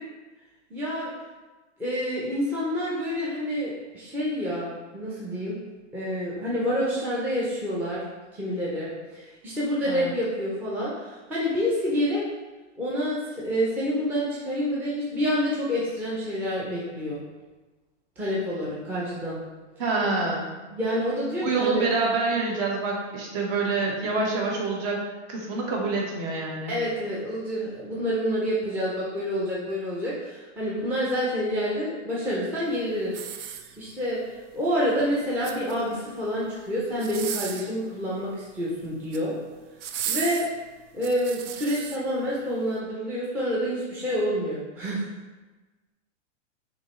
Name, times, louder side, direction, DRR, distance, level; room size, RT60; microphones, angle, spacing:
voice 1, 0.7-1.1 1.8-5.6 5.9-8.0 8.3-12.2 12.8-17.2 18.2-19.4 20.7-21.8 26.7-33.1 33.8-39.3 40.1-40.5 40.9-45.0, equal, 5° right, -7 dB, 0.5 m, -28 dB
voice 2, 19.8-20.5 21.4-25.0 25.3-26.8, right 3 dB, 45° right, -1 dB, 1.3 m, -26 dB
sound 1, 33.1-34.1 35.2-36.0 36.9-37.8 38.8-39.3 39.8-42.0 42.6-42.7, right 8 dB, 70° right, 0.6 m, -35 dB
5.9 x 2.9 x 3.1 m, 1.2 s
hypercardioid pair, 135°, 37 cm